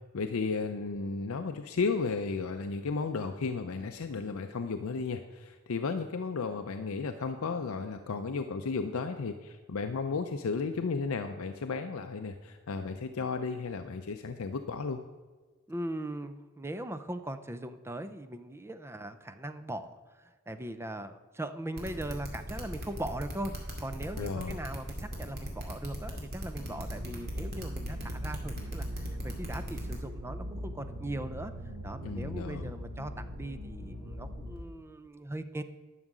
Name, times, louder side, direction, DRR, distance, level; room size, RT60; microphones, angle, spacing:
voice 1, 0.1-15.0 24.2-24.6 32.0-32.7, left 4 dB, 70° left, 7 dB, 0.5 m, -34 dB
voice 2, 15.7-31.5 31.8-35.6, right 1 dB, 10° right, 10 dB, 0.5 m, -40 dB
sound 1, 21.8-29.9, equal, 50° right, 2.2 m, -38 dB
sound 2, 26.6-34.6, equal, 80° right, 2.5 m, -41 dB
11.0 x 6.6 x 6.0 m, 1.4 s
head